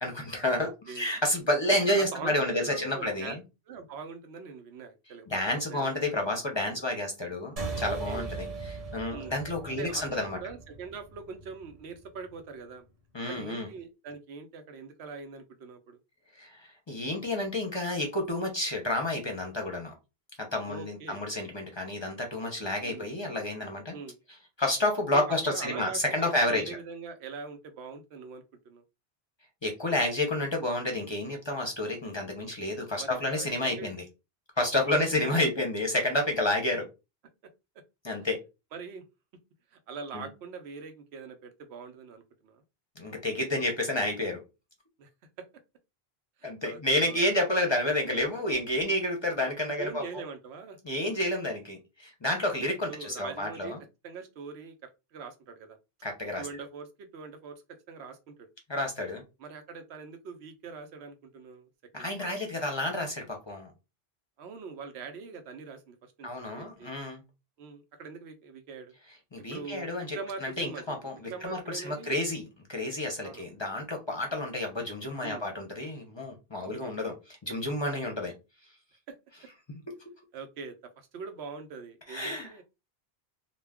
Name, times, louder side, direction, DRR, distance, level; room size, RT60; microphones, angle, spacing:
voice 1, 0.0-3.4 5.3-10.4 13.1-13.7 16.4-16.6 16.9-19.9 20.4-23.9 24.6-26.8 29.6-34.0 34.6-36.9 38.0-38.4 40.1-40.3 43.0-44.4 46.4-50.0 50.8-53.8 56.0-56.5 58.7-59.2 61.9-63.7 66.2-67.2 69.3-72.4 72.7-78.3 82.1-82.5, left 1 dB, 35° left, 0.5 m, -30 dB
voice 2, 0.6-1.1 1.9-3.3 3.7-6.2 7.7-8.3 9.1-9.4 9.8-12.8 13.3-16.0 20.6-21.2 22.8-23.1 23.9-24.2 25.1-28.8 33.0-33.9 35.0-35.4 38.7-39.0 39.7-42.6 45.0-45.1 45.4-45.5 46.4-47.2 48.0-48.2 49.8-50.8 52.8-53.8 54.0-55.8 56.4-58.5 59.4-61.7 62.0-62.3 64.4-66.9 67.6-68.9 69.5-72.2 73.2-73.5 75.2-75.5 76.6-77.0 79.1-79.2 80.3-82.6, right 5 dB, 90° right, 0.9 m, -43 dB
sound 1, 7.6-12.4, right 3 dB, 40° right, 0.9 m, -39 dB
2.3 x 2.2 x 3.4 m
omnidirectional pair, 1.0 m